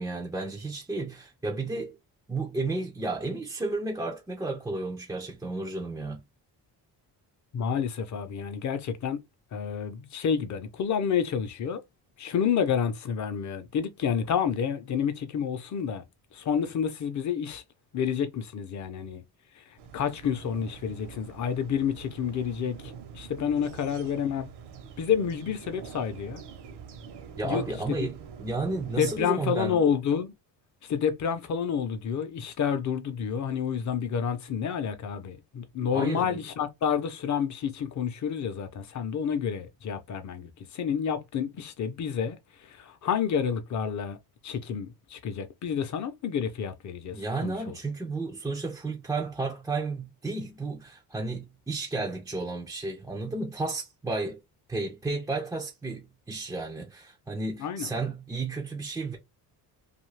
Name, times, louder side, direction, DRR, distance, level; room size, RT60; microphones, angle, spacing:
voice 1, 0.0-2.0 2.3-6.2 27.4-29.8 35.9-36.4 47.1-54.4 54.7-59.2, right 3 dB, 10° right, 0.3 m, -32 dB
voice 2, 7.5-9.2 9.5-11.8 12.2-16.0 16.3-17.6 17.9-19.2 19.6-19.7 19.9-24.5 25.0-26.4 27.4-28.0 29.0-30.3 30.8-44.2 44.4-47.8 57.6-57.9, left 7 dB, 45° left, 0.6 m, -29 dB
sound 1, 19.8-29.2, right 6 dB, 70° right, 0.9 m, -45 dB
2.7 x 2.4 x 3.1 m
cardioid pair, 155°, 42 cm